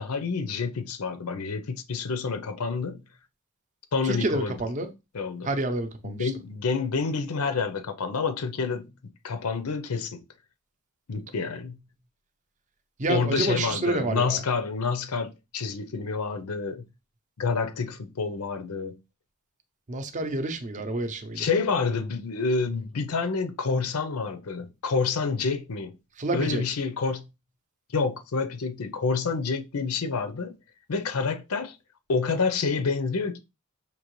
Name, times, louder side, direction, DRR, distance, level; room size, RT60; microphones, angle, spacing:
voice 1, 0.0-3.0 3.9-4.6 5.1-5.5 6.0-10.2 11.1-11.8 13.1-16.8 17.4-19.0 21.3-25.9 26.3-27.3 27.9-30.6 30.9-31.8 32.1-33.4, left 4 dB, 85° left, 0.6 m, -28 dB
voice 2, 4.0-4.9 5.4-6.3 13.0-14.4 19.9-21.5 26.2-26.6, right 2 dB, 35° right, 0.6 m, -28 dB
5.2 x 2.9 x 3.1 m
head